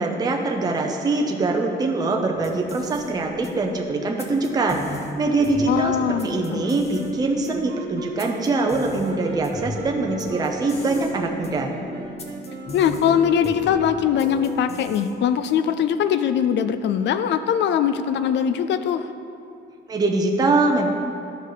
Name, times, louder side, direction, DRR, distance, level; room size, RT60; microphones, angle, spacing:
voice 1, 0.0-6.0 6.2-11.7 19.9-20.9, right 3 dB, 20° right, 1 dB, 0.6 m, -23 dB
sound 1, 2.3-15.8, left 2 dB, 35° left, 0.8 m, -37 dB
Wind instrument woodwind instrument, 5.5-14.3, right 3 dB, 65° right, 1.0 m, -38 dB
voice 2, 5.7-6.6 12.7-19.1, left 8 dB, 70° left, 11 dB, 0.4 m, -21 dB
13.0 x 5.2 x 4.0 m, 2.6 s
cardioid pair, 170°, 19 cm